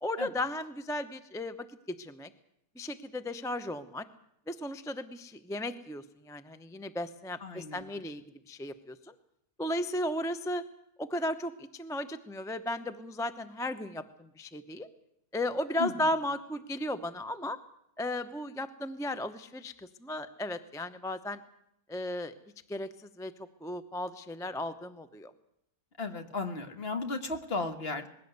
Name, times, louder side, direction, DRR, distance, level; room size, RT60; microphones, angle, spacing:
voice 1, 0.0-2.3 2.7-4.1 4.5-9.1 9.6-10.6 11.0-14.9 15.3-17.6 18.0-21.4 21.9-22.3 22.7-23.3 23.6-25.3, left 1 dB, 5° left, 11 dB, 0.5 m, -35 dB
voice 2, 7.4-8.0 15.8-16.1 26.0-28.1, left 3 dB, 40° left, 7 dB, 1.7 m, -35 dB
21.0 x 16.5 x 8.1 m, 0.77 s
omnidirectional pair, 1.6 m